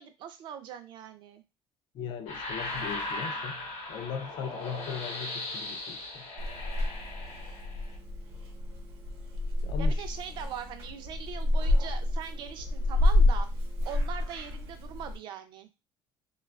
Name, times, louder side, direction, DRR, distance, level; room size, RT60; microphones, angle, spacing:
voice 1, 0.0-1.4 9.8-13.5 13.9-15.7, right 8 dB, 50° right, 0.5 m, -41 dB
voice 2, 1.9-6.3 9.6-10.1, left 7 dB, 50° left, 0.4 m, -39 dB
sound 1, 2.3-7.9, left 2 dB, 75° left, 0.8 m, -38 dB
Purr / Meow, 6.4-15.2, left 2 dB, 75° right, 0.8 m, -29 dB
2.4 x 2.2 x 2.3 m
cardioid pair, 160°, 10 cm